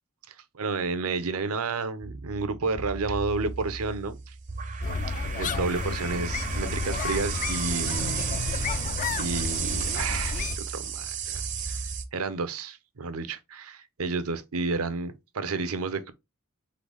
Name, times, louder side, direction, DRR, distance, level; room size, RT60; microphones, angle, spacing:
voice 1, 0.3-4.3 5.2-8.9 9.2-11.8 12.1-16.1, right 4 dB, 80° right, 0.7 m, -31 dB
sound 1, 2.0-12.1, right 6 dB, 35° right, 0.5 m, -33 dB
sound 2, 4.8-10.6, left 5 dB, 35° left, 0.3 m, -32 dB
3.9 x 3.9 x 3.4 m
head